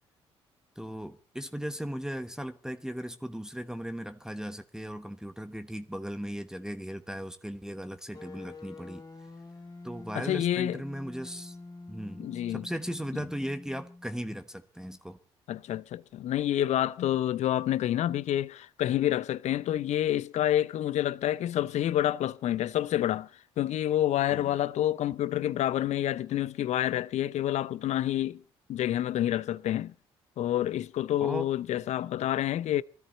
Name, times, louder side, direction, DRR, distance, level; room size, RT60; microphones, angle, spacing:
voice 1, 0.8-9.0 9.8-11.6 11.9-15.2 24.3-24.5 31.2-31.5, equal, 5° right, 1.1 m, -37 dB
sound 1, 8.1-14.2, left 3 dB, 30° left, 2.1 m, -46 dB
voice 2, 10.1-10.8 12.2-12.7 15.5-23.3 23.6-28.4 28.7-29.9 30.4-32.8, left 12 dB, 60° left, 0.6 m, -28 dB
19.5 x 13.5 x 4.1 m
hypercardioid pair, 50°, 13 cm